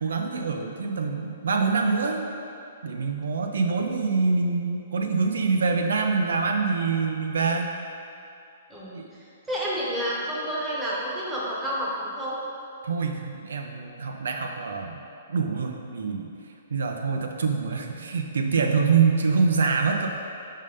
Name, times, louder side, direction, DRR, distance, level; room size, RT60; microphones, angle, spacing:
voice 1, 0.0-2.3 2.8-7.7 8.9-9.1 12.8-15.0 15.3-16.3 16.7-20.1, right 4 dB, 85° right, 2 dB, 0.6 m, -25 dB
voice 2, 9.5-12.4, equal, 5° right, -6 dB, 0.9 m, -29 dB
5.4 x 3.7 x 5.0 m, 2.6 s
hypercardioid pair, 160°, 0 cm